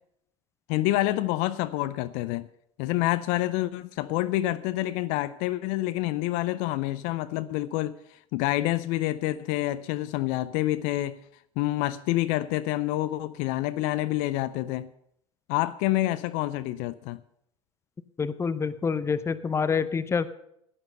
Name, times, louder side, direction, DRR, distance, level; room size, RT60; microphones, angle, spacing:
voice 1, 0.7-2.5 2.8-8.0 8.3-11.2 11.6-14.9 15.5-17.2, left 16 dB, 55° left, 0.5 m, -27 dB
voice 2, 18.2-20.3, left 5 dB, 15° left, 0.7 m, -27 dB
11.0 x 9.1 x 6.7 m
hypercardioid pair, 85°, 17 cm